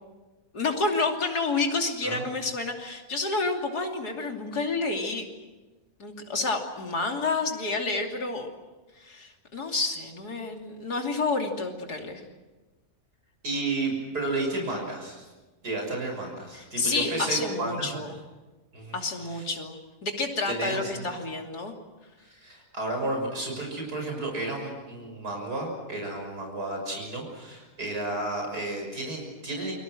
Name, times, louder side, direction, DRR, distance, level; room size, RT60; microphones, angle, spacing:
voice 1, 0.5-5.3 6.0-8.5 9.0-12.2 16.5-18.2 18.9-21.7, left 3 dB, 85° left, 2 dB, 3.4 m, -29 dB
voice 2, 13.4-15.2 15.6-18.0 18.7-19.0 19.3-19.4 20.5-21.0 22.2-29.7, right 2 dB, 85° right, 1 dB, 6.9 m, -32 dB
29.0 x 23.5 x 6.3 m, 1.2 s
omnidirectional pair, 1.6 m